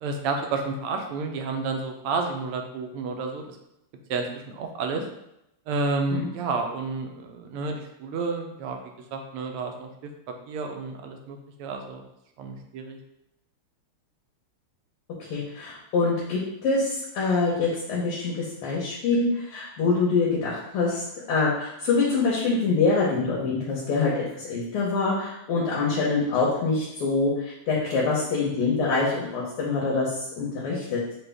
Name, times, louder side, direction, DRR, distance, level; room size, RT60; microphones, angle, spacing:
voice 1, 0.0-3.6 4.1-4.3 4.5-5.0 5.7-8.8 9.1-9.9 10.5-12.0 12.4-13.0, right 4 dB, 90° right, 4 dB, 1.6 m, -30 dB
voice 2, 15.3-31.0, left 3 dB, 85° left, -6 dB, 1.9 m, -25 dB
6.4 x 2.3 x 3.4 m, 0.83 s
omnidirectional pair, 2.4 m